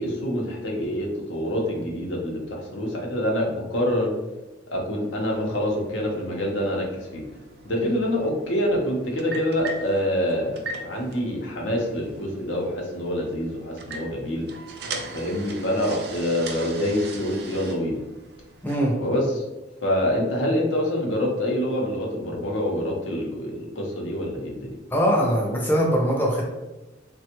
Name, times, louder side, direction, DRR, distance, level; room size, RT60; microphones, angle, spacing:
voice 1, 0.0-4.1 4.7-6.9 7.1-7.2 7.6-14.5 15.1-18.0 19.0-19.4 19.8-24.8, equal, 90° left, -1 dB, 0.8 m, -26 dB
sound 1, 5.1-18.8, right 3 dB, 55° right, 0.4 m, -40 dB
voice 2, 18.6-19.0 24.9-26.4, equal, 10° left, -2 dB, 0.5 m, -21 dB
3.3 x 2.2 x 2.9 m, 1.1 s
head